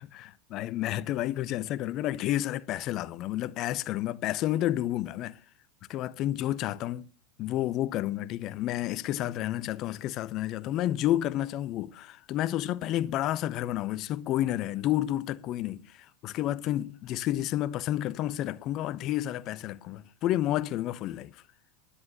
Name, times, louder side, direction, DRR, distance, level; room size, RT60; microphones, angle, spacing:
voice 1, 0.0-5.4 5.9-7.1 7.4-21.4, left 13 dB, 45° left, 0.7 m, -30 dB
10.5 x 10.0 x 6.8 m
hypercardioid pair, 85°, 0 cm